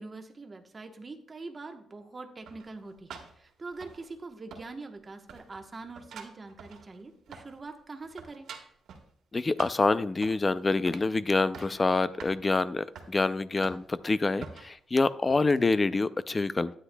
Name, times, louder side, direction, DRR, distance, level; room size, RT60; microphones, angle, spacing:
voice 1, 0.0-8.5, right 3 dB, 25° right, 5 dB, 1.0 m, -44 dB
sound 1, 2.5-4.3 4.5-5.0 5.3-7.7 7.9-9.1 9.6-10.5 10.9-11.1 11.4-11.8 12.2-12.4 12.9-13.1 13.6-14.0 14.4-14.7 15.3-15.4, right 6 dB, 80° right, 1.4 m, -46 dB
voice 2, 9.3-16.7, left 3 dB, 20° left, 15 dB, 0.4 m, -26 dB
12.5 x 9.6 x 2.2 m, 0.66 s
cardioid pair, 130°, 0 cm